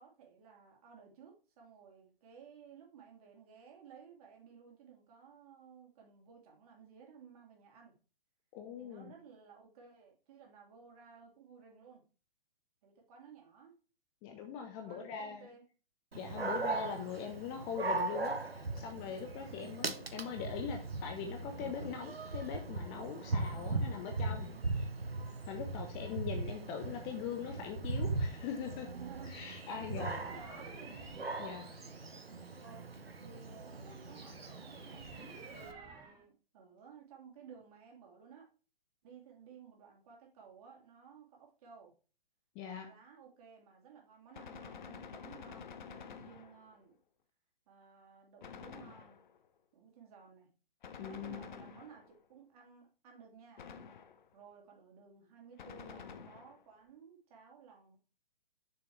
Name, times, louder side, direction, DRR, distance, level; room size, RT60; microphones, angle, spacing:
voice 1, 0.0-8.0 8.8-12.0 12.8-13.7 14.7-15.6 19.4-19.8 23.5-24.0 24.5-25.0 25.6-26.0 28.8-31.1 31.6-31.9 32.6-32.9 33.2-38.5 39.0-41.9 42.8-47.0 47.7-49.2 49.7-50.5 51.0-52.0 52.3-53.6 54.3-58.0, right 6 dB, 40° right, 0 dB, 3.1 m, -56 dB
voice 2, 8.5-9.1 14.2-15.5 16.2-24.8 25.5-28.9 29.2-30.2 31.4-31.7 42.5-42.9 51.0-51.6, left 7 dB, 20° left, 5 dB, 0.8 m, -42 dB
Dog, 16.1-35.7, right 3 dB, 90° right, 1.0 m, -39 dB
sound 1, 29.9-32.8 33.4-36.2, right 4 dB, 15° right, 1.9 m, -53 dB
Gunshot gunfire, 44.3-46.8 48.4-49.5 50.8-52.3 53.6-54.4 55.6-56.7, left 6 dB, 50° left, 0.9 m, -50 dB
6.8 x 6.8 x 3.2 m, 0.35 s
figure-of-eight pair, 130°, 29 cm